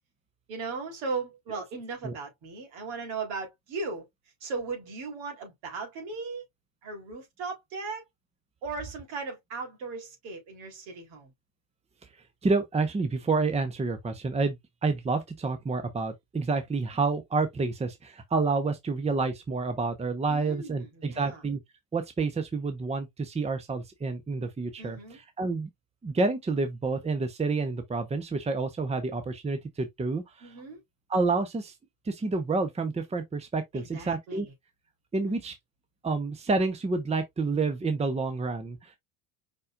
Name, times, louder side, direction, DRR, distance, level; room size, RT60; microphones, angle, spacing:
voice 1, 0.5-4.1 4.4-6.4 6.8-8.0 8.6-11.3 20.3-21.4 24.8-25.2 30.4-30.8 33.7-34.5 35.3-35.4, right 4 dB, 70° right, 3.7 m, -37 dB
voice 2, 12.4-14.6 14.8-21.6 21.9-25.7 26.0-30.5 31.1-31.7 32.1-34.5 35.1-35.6 36.0-39.0, right 3 dB, 15° right, 1.0 m, -29 dB
5.3 x 4.0 x 2.5 m
hypercardioid pair, 85°, 40 cm